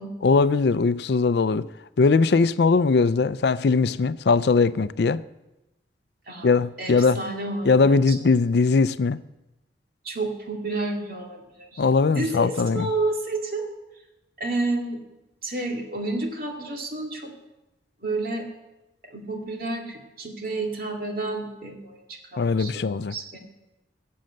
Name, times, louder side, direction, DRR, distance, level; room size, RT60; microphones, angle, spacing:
voice 1, 0.2-1.7 2.0-5.2 6.4-7.2 7.7-9.2 11.8-12.9 22.4-23.1, left 4 dB, 60° left, 0.4 m, -20 dB
voice 2, 6.8-8.2 10.0-11.8 12.1-13.7 14.4-15.0 15.4-17.3 18.0-18.5 19.1-23.4, right 2 dB, 50° right, 2.5 m, -30 dB
17.0 x 7.7 x 7.6 m
head